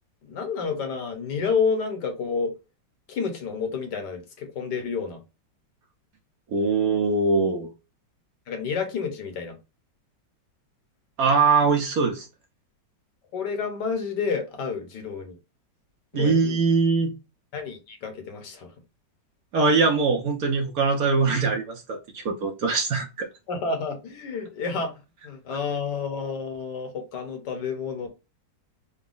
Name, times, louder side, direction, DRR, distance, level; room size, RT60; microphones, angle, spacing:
voice 1, 0.2-2.6 3.1-5.2 8.5-9.6 13.3-15.4 16.1-16.6 17.5-18.7 23.5-24.9 25.2-28.1, left 5 dB, 70° left, 1.5 m, -29 dB
voice 2, 6.5-7.7 11.2-12.2 16.1-17.1 19.5-23.3, right 4 dB, 60° right, 1.2 m, -22 dB
4.0 x 2.2 x 3.8 m
omnidirectional pair, 2.0 m